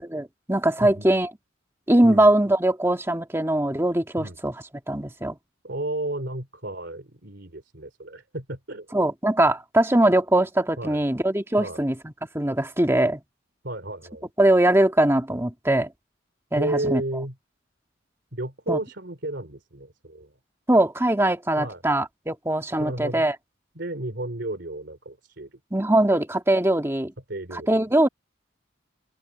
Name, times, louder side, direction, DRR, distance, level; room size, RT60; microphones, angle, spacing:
voice 1, 0.1-1.3 1.9-4.5 4.9-5.4 8.9-13.2 14.4-15.9 16.5-17.0 18.7-18.8 20.7-23.4 25.7-27.1 27.7-28.1, right 1 dB, 15° right, 1.8 m, -21 dB
voice 2, 0.8-1.1 2.0-2.3 4.2-4.4 5.6-8.9 10.8-11.0 11.6-11.8 13.6-14.3 16.5-17.4 18.3-20.3 21.6-21.8 22.8-23.3 23.7-25.6 27.3-27.8, right 1 dB, 60° right, 3.0 m, -32 dB
open air
head